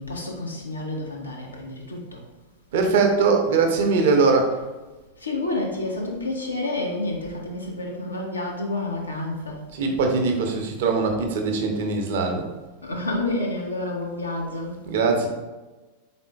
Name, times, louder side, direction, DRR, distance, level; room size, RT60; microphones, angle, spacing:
voice 1, 0.0-2.2 5.2-9.6 12.8-14.8, left 2 dB, 80° left, -1 dB, 0.7 m, -29 dB
voice 2, 2.7-4.5 9.7-12.5 14.9-15.3, right 4 dB, 55° right, 3 dB, 0.6 m, -21 dB
4.2 x 3.7 x 2.3 m, 1.2 s
figure-of-eight pair, 90°, 0 cm